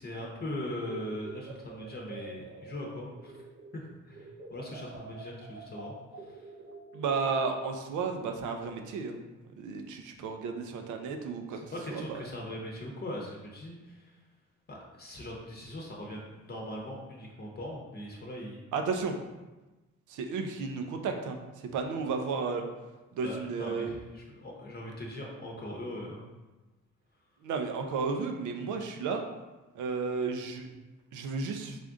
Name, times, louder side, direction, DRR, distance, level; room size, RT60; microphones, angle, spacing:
voice 1, 0.0-3.3 3.7-5.9 6.2-6.4 11.7-14.1 14.7-18.6 23.2-26.2, left 1 dB, 30° left, -2 dB, 0.8 m, -40 dB
sound 1, 0.6-3.8 4.1-7.1, right 4 dB, 40° right, 0.7 m, -47 dB
voice 2, 6.9-9.2 9.6-11.6 11.9-12.2 18.7-19.2 20.1-22.7 23.1-23.9 27.4-29.3 29.7-30.7 31.1-31.8, right 4 dB, 75° right, 5 dB, 0.6 m, -33 dB
3.6 x 2.5 x 3.6 m, 1.1 s
cardioid pair, 90°, 30 cm